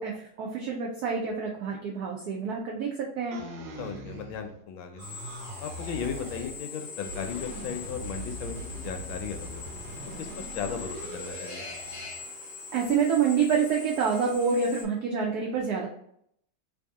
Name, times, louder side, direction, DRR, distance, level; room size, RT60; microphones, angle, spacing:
voice 1, 0.0-3.4 12.7-15.9, right 6 dB, 90° right, -1 dB, 0.8 m, -27 dB
sound 1, 3.3-4.6 4.9-6.6 7.0-12.2, right 1 dB, 70° right, 1.3 m, -41 dB
voice 2, 3.8-5.0 5.6-9.6 10.2-11.6, left 7 dB, 80° left, 6 dB, 1.3 m, -36 dB
Drill, 5.0-14.8, left 4 dB, 50° left, 1.1 m, -42 dB
3.3 x 2.7 x 3.5 m, 0.70 s
omnidirectional pair, 2.3 m